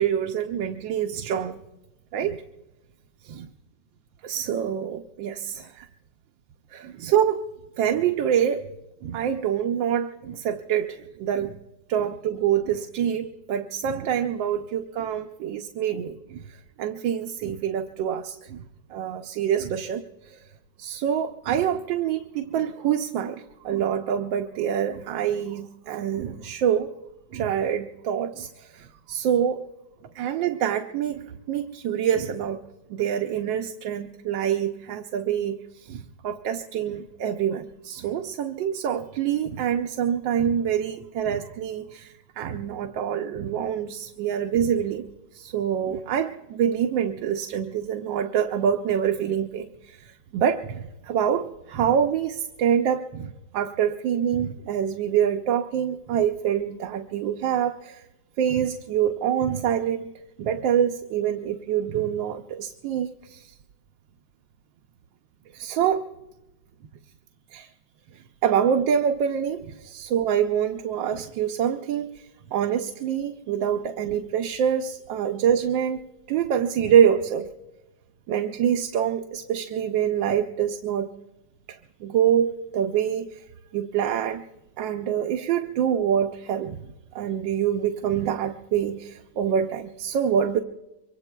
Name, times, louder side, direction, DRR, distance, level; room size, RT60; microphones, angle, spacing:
voice 1, 0.0-1.6 2.1-2.4 3.2-3.5 4.2-5.9 6.7-7.4 7.8-8.6 9.0-11.6 11.9-16.4 16.8-18.6 18.9-20.4 20.8-26.9 27.3-29.6 30.1-32.6 32.9-45.0 45.3-58.0 58.4-60.1 60.4-63.5 65.5-66.1 67.5-67.7 68.4-72.2 72.5-76.0 76.3-77.5 78.3-81.1 81.7-83.4 83.7-84.4 84.8-86.8 87.1-90.6, right 9 dB, 80° right, 5 dB, 1.4 m, -26 dB
25.0 x 23.5 x 2.2 m, 1.1 s
omnidirectional pair, 2.0 m